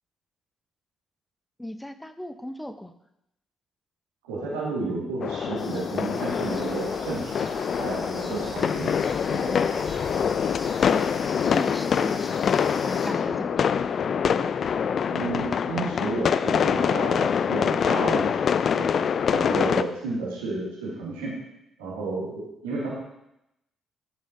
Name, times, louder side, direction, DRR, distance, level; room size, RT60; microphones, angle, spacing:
voice 1, 1.6-2.9 10.9-11.1 11.5-12.6 12.8-13.7 20.1-20.2, left 1 dB, 10° left, 10 dB, 0.8 m, -37 dB
voice 2, 4.2-9.6 15.1-18.9 19.3-21.3 21.8-22.9, right 3 dB, 85° right, -5 dB, 2.4 m, -32 dB
sound 1, 5.2-19.8, left 7 dB, 55° left, 0.4 m, -25 dB
sound 2, 5.6-13.1, left 2 dB, 35° left, 2.0 m, -45 dB
sound 3, 6.1-11.3, right 2 dB, 55° right, 3.6 m, -45 dB
12.0 x 6.5 x 2.7 m, 0.84 s
hypercardioid pair, 45°, 0 cm